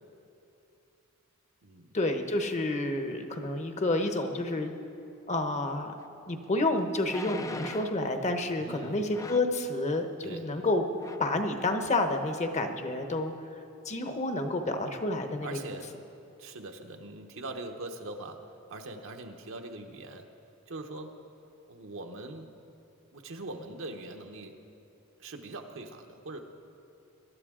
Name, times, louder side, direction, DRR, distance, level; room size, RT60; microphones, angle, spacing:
voice 1, 1.9-4.7 5.3-5.9 6.3-10.8 11.2-13.3 13.9-15.6, left 2 dB, 30° left, 6 dB, 0.8 m, -29 dB
sound 1, 6.0-6.1 7.0-8.1 9.1-9.6 10.5-10.7 11.0-11.3 11.9-12.0, left 3 dB, 15° left, 0.3 m, -41 dB
voice 2, 8.6-9.0 10.2-10.5 15.4-16.0 16.4-20.3 20.7-21.1 21.7-22.5 23.1-24.5 25.2-26.4, right 2 dB, 60° right, 4 dB, 1.0 m, -42 dB
21.5 x 12.0 x 3.7 m, 2.7 s
head